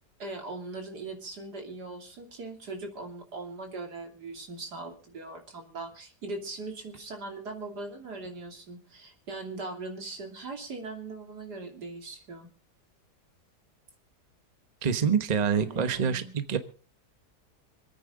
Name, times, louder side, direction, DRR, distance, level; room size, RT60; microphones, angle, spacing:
voice 1, 0.2-12.5 15.4-16.4, right 3 dB, 85° right, 3 dB, 3.5 m, -40 dB
voice 2, 14.8-16.6, right 7 dB, 30° right, 10 dB, 1.1 m, -26 dB
26.5 x 9.4 x 3.8 m, 0.37 s
omnidirectional pair, 1.7 m